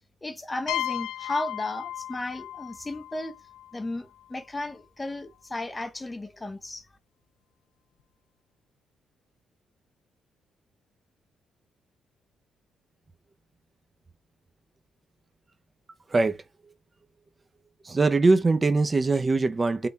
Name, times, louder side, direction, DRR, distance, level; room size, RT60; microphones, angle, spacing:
voice 1, 0.2-3.4 3.7-6.9, left 2 dB, 20° left, 0.6 m, -34 dB
sound 1, 0.7-4.3, left 13 dB, 90° left, 0.4 m, -35 dB
voice 2, 17.8-19.9, right 3 dB, 25° right, 0.5 m, -22 dB
3.7 x 2.2 x 4.0 m
cardioid pair, 90°, 0 cm